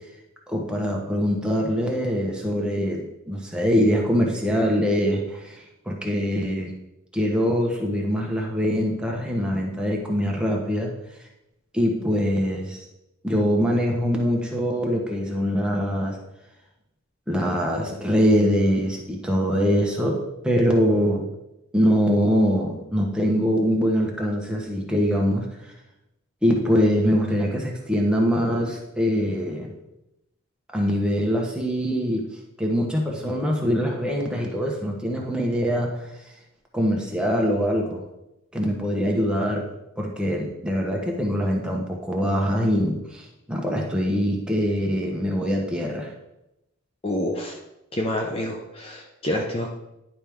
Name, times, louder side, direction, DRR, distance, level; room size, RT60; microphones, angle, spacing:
voice 1, 0.5-6.7 7.1-10.9 11.7-12.8 13.2-16.2 17.3-21.3 21.7-25.7 26.4-29.8 30.7-32.3 32.6-36.1 36.7-38.0 38.5-39.7 40.0-46.1, equal, 5° right, -1 dB, 1.0 m, -23 dB
voice 2, 47.0-47.6 47.9-49.7, left 1 dB, 25° left, 1 dB, 0.6 m, -27 dB
10.5 x 4.5 x 3.5 m, 0.92 s
head